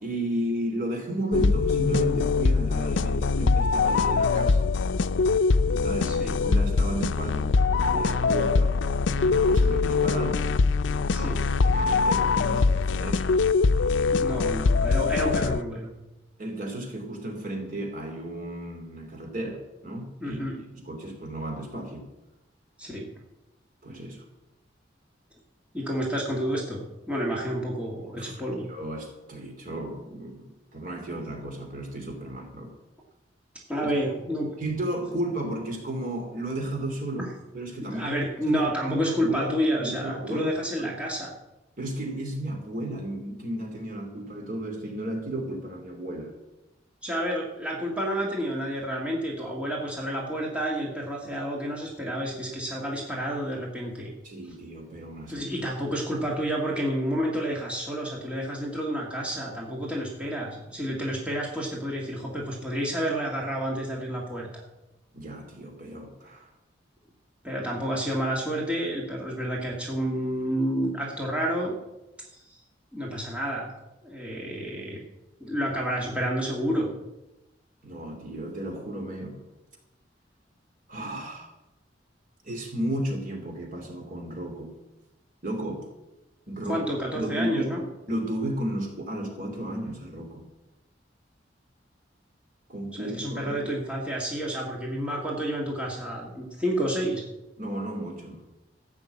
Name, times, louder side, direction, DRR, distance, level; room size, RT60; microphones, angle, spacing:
voice 1, 0.0-4.6 5.7-8.8 9.1-10.4 11.2-11.3 11.6-13.3 16.4-20.4 20.8-22.1 23.8-24.2 28.2-28.3 28.7-32.7 33.8-33.9 34.6-38.2 38.4-39.5 39.8-40.5 40.8-40.9 41.8-46.3 54.2-55.5 65.1-66.5 77.8-79.4 80.9-81.5 82.4-84.7 85.4-85.9 86.5-86.8 87.2-87.7 88.1-90.4 92.7-93.7 97.6-98.4, right 1 dB, 45° right, 2 dB, 2.9 m, -33 dB
sound 1, 1.3-15.6, left 4 dB, 85° left, 0.5 m, -23 dB
voice 2, 14.1-15.9 20.2-20.6 22.8-23.1 25.7-28.7 33.7-34.5 37.2-37.3 37.8-41.3 47.0-54.2 55.3-64.6 67.4-71.7 72.4-72.6 72.9-73.7 74.0-75.0 75.4-76.9 86.7-87.9 92.9-97.2, equal, 5° right, -3 dB, 1.9 m, -30 dB
14.5 x 6.0 x 8.3 m, 0.99 s
head